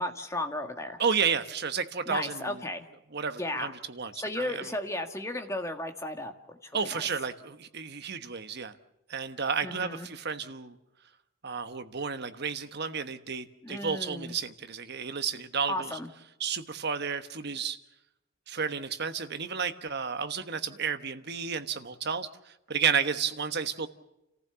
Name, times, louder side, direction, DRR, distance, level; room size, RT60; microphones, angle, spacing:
voice 1, 0.0-1.0 2.1-2.9 3.4-3.7 4.1-7.1 9.6-10.1 13.6-14.3 15.7-16.1, left 1 dB, 15° left, 5 dB, 1.7 m, -35 dB
voice 2, 1.0-2.6 3.1-4.7 6.7-8.8 9.1-10.8 11.4-16.0 16.4-17.8 18.5-23.9, right 6 dB, 50° right, 9 dB, 1.2 m, -32 dB
30.0 x 15.0 x 6.9 m, 0.90 s
head